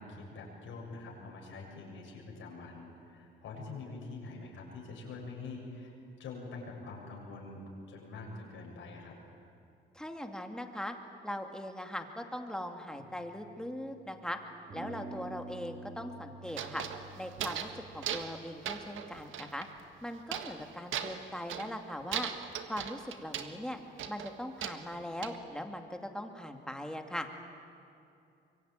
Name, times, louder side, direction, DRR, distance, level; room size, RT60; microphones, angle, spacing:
voice 1, 0.0-5.9 6.2-7.6 7.9-9.1 20.4-20.5, left 3 dB, 80° left, -1 dB, 7.3 m, -45 dB
voice 2, 9.9-11.0 11.2-14.4 14.7-16.8 17.2-19.7 20.0-22.3 22.7-23.8 24.1-27.3, left 1 dB, 5° left, 4 dB, 2.5 m, -40 dB
sound 1, 13.0-14.2 14.7-19.9, right 2 dB, 50° right, 3.3 m, -50 dB
sound 2, 16.5-17.8 18.0-18.4 18.7-19.7 20.3-20.6 20.9-21.8 22.1-23.5 24.0-25.4, right 9 dB, 80° right, 1.7 m, -38 dB
25.5 x 23.5 x 9.1 m, 2.6 s
cardioid pair, 90°, 20 cm